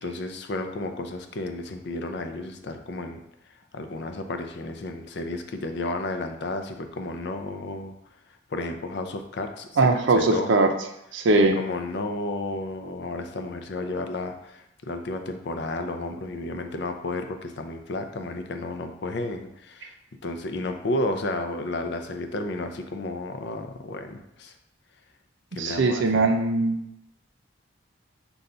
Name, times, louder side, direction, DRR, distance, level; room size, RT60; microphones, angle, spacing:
voice 1, 0.0-3.2 3.7-7.9 8.5-9.7 10.1-10.5 11.4-20.0 20.2-24.5 25.5-26.3, left 2 dB, 60° left, 6 dB, 0.4 m, -32 dB
voice 2, 9.8-10.7 11.1-11.6 25.6-26.8, right 3 dB, 70° right, 4 dB, 0.5 m, -20 dB
5.4 x 2.3 x 3.8 m, 0.80 s
head